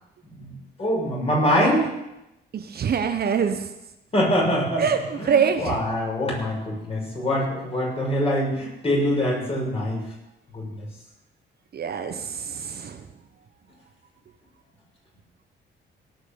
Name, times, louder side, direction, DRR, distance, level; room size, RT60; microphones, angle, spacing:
voice 1, 0.8-1.9 4.1-10.0 10.5-10.8, equal, 30° left, -2 dB, 6.4 m, -24 dB
voice 2, 2.5-3.7 4.8-5.8 11.7-13.0, right 7 dB, 50° right, 7 dB, 1.1 m, -24 dB
17.5 x 6.3 x 7.0 m, 0.90 s
cardioid pair, 90°, 20 cm